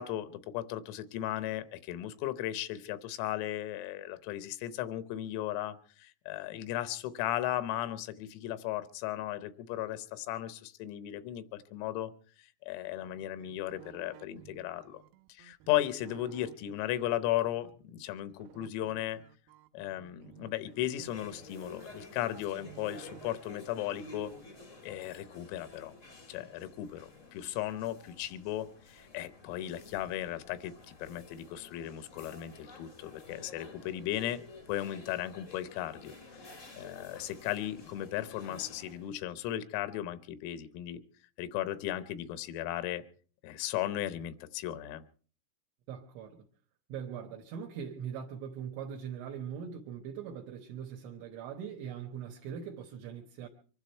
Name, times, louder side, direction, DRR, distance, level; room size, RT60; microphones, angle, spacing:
voice 1, 0.0-12.1 12.4-15.0 15.3-19.2 19.7-24.3 24.8-25.9 26.3-34.4 34.7-36.2 36.8-41.0 41.4-43.0 43.4-45.0, left 13 dB, 85° left, 13 dB, 3.7 m, -36 dB
sound 1, 13.0-17.7 18.4-23.3, right 12 dB, 90° right, 3.6 m, -55 dB
sound 2, 20.7-39.1, left 2 dB, 55° left, 0.8 m, -52 dB
voice 2, 45.9-46.4 46.9-53.5, right 8 dB, 70° right, 2 dB, 3.5 m, -41 dB
25.0 x 12.0 x 4.5 m, 0.41 s
omnidirectional pair, 5.9 m